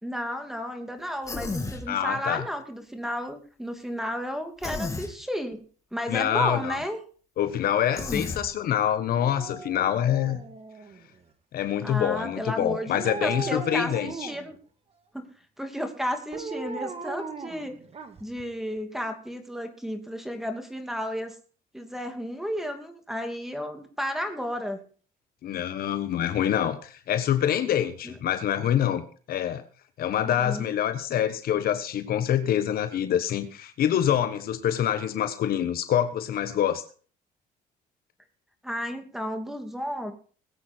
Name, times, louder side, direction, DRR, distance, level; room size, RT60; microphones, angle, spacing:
voice 1, 0.0-5.6 5.9-7.0 11.8-14.6 15.1-15.3 15.6-17.8 18.2-21.3 21.7-24.8 28.0-28.2 30.2-30.7 38.6-40.1, equal, ahead, 6 dB, 2.7 m, -33 dB
Human voice, 1.2-1.8 4.6-5.1 8.0-8.4, left 3 dB, 20° left, 2.8 m, -32 dB
voice 2, 1.9-2.5 6.1-6.8 7.4-10.4 11.5-14.3 25.4-29.0 29.3-29.6 30.0-36.8, left 10 dB, 60° left, 10 dB, 1.3 m, -26 dB
Dog, 9.1-11.2 12.9-14.6 16.3-18.4 18.8-18.9, right 4 dB, 35° right, 1.9 m, -38 dB
21.0 x 8.4 x 4.5 m, 0.42 s
cardioid pair, 110°, 17 cm